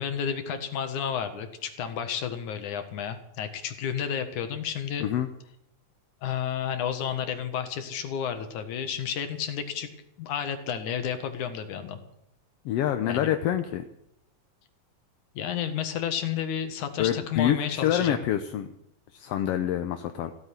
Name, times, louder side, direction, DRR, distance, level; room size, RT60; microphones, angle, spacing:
voice 1, 0.0-5.1 6.2-9.9 10.2-12.0 13.1-13.3 15.3-18.3, left 8 dB, 85° left, 8 dB, 3.0 m, -31 dB
voice 2, 12.6-13.8 17.0-18.7 19.1-20.3, left 11 dB, 70° left, 8 dB, 1.6 m, -26 dB
16.0 x 8.9 x 9.7 m, 0.80 s
omnidirectional pair, 3.4 m